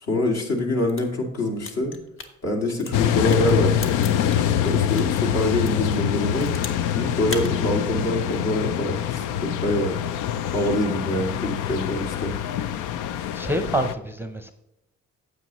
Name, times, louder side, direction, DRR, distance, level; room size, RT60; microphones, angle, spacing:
voice 1, 0.0-1.9 2.4-4.4 4.6-6.5 6.9-10.2 10.4-12.3, left 1 dB, 60° left, 1 dB, 2.3 m, -25 dB
sound 1, 0.8-5.2 5.6-6.9 7.2-7.5, left 3 dB, 45° left, 1.3 m, -38 dB
sound 2, 2.9-13.9, left 10 dB, 85° left, 0.5 m, -25 dB
voice 2, 13.3-14.5, right 1 dB, 5° right, 7 dB, 0.6 m, -26 dB
9.3 x 8.0 x 3.1 m, 0.92 s
cardioid pair, 90°, 30 cm